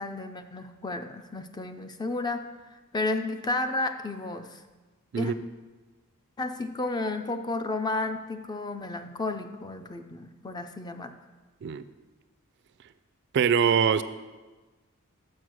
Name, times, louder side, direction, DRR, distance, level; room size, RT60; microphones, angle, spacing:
voice 1, 0.0-4.6 5.2-5.3 6.4-11.1, left 2 dB, 20° left, 8 dB, 0.4 m, -32 dB
voice 2, 13.3-14.0, right 7 dB, 50° right, 13 dB, 0.3 m, -23 dB
6.4 x 6.4 x 6.1 m, 1.2 s
head